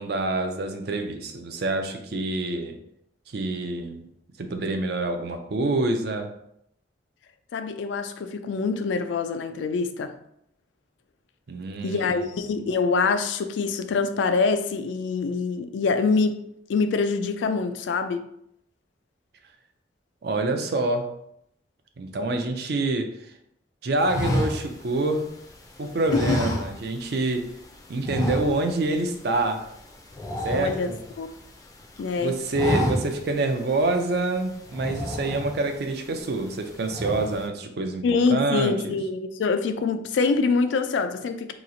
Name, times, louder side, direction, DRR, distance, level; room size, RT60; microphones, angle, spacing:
voice 1, 0.0-2.8 3.3-4.0 4.4-6.3 11.5-12.1 12.5-12.6 20.2-21.1 22.0-23.2 23.8-25.3 25.8-27.5 27.9-29.6 30.4-31.0 32.2-38.9, right 2 dB, 60° right, 0.4 m, -26 dB
voice 2, 7.5-10.1 11.8-18.2 26.1-26.4 30.5-30.9 31.2-31.3 32.0-32.3 38.0-41.5, left 4 dB, 80° left, 0.3 m, -25 dB
sound 1, 24.1-25.5 26.1-27.2 27.4-27.6 28.0-28.9 29.2-29.4 29.7-31.4 31.8-32.1 32.4-33.4 33.8-33.9 34.7-35.8 36.3-36.6 36.9-37.5, left 1 dB, 20° left, 0.4 m, -29 dB
3.0 x 2.4 x 3.8 m
head